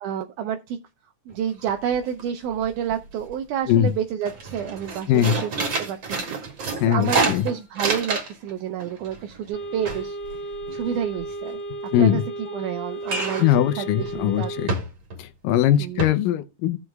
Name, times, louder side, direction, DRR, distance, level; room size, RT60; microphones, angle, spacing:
voice 1, 0.0-0.8 1.3-5.5 5.8-10.2 10.7-14.5 15.8-16.0, right 9 dB, 75° right, 2.0 m, -29 dB
sound 1, 1.3-1.4 1.7-2.2 2.5-3.3 3.7-3.9 4.2-8.5 8.8-11.2 13.0-13.6 14.0-14.2 14.7-15.2 15.6-15.7 16.0-16.1, right 3 dB, 40° right, 2.4 m, -28 dB
voice 2, 6.8-7.5 11.9-12.2 13.4-14.8 15.2-16.8, left 11 dB, 85° left, 2.4 m, -21 dB
sound 2, 9.5-14.7, right 2 dB, 45° left, 0.8 m, -34 dB
16.5 x 6.2 x 2.3 m
omnidirectional pair, 3.8 m